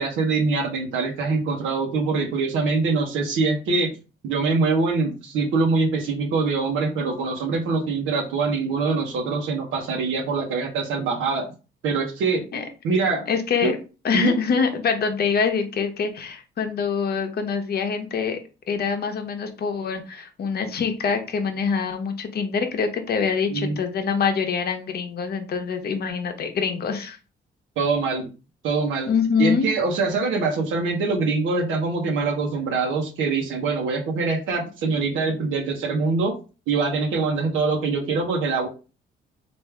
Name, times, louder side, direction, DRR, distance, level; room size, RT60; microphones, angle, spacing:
voice 1, 0.0-3.9 4.2-11.5 11.8-12.5 12.8-13.3 13.6-13.7 14.1-14.3 23.5-23.8 27.8-28.3 28.6-29.1 29.4-36.3 36.7-38.7, right 4 dB, 85° right, 0 dB, 0.9 m, -24 dB
voice 2, 13.3-13.8 14.0-18.4 18.7-27.2 29.1-29.7, left 6 dB, 55° left, 6 dB, 0.8 m, -25 dB
3.4 x 2.5 x 3.3 m, 0.33 s
cardioid pair, 90°, 20 cm